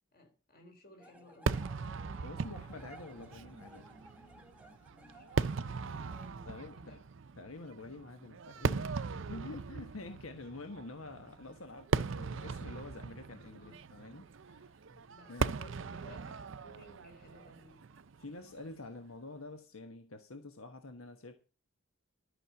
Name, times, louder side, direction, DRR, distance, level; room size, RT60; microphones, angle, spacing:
voice 1, 0.1-1.7 4.9-7.0 9.4-9.6 13.6-13.8 14.8-17.8, left 1 dB, 45° left, 4.1 m, -57 dB
sound 1, 1.0-6.3, right 1 dB, 5° right, 1.1 m, -57 dB
Fireworks, 1.5-18.8, right 5 dB, 65° right, 0.5 m, -39 dB
voice 2, 2.1-3.9 6.5-7.0 7.4-14.9 15.3-15.5 18.2-21.3, left 2 dB, 85° left, 1.3 m, -48 dB
12.5 x 6.6 x 7.1 m
head